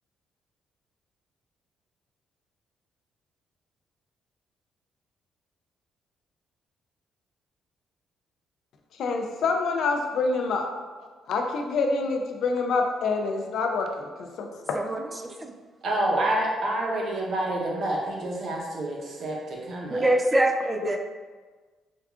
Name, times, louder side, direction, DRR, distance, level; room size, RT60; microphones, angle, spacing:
voice 1, 9.0-10.7 11.3-14.9 20.8-20.9, left 4 dB, 70° left, 3 dB, 0.4 m, -27 dB
voice 2, 15.8-20.1, right 1 dB, 60° right, -2 dB, 0.7 m, -28 dB
voice 3, 19.9-21.0, right 1 dB, 20° right, 5 dB, 0.3 m, -23 dB
4.5 x 2.3 x 2.3 m, 1.4 s
cardioid pair, 90°, 0 cm